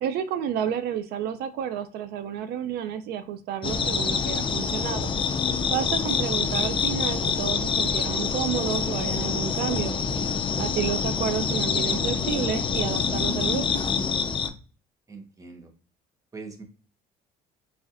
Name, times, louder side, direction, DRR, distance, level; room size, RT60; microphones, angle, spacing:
voice 1, 0.0-5.1 5.7-10.0 10.6-13.8, right 9 dB, 75° right, 10 dB, 0.4 m, -30 dB
sound 1, 3.6-14.5, left 5 dB, 30° left, 0.4 m, -26 dB
voice 2, 15.1-15.7 16.3-16.6, right 4 dB, 20° right, 3 dB, 0.9 m, -42 dB
4.1 x 2.5 x 2.5 m, 0.39 s
cardioid pair, 110°, 17 cm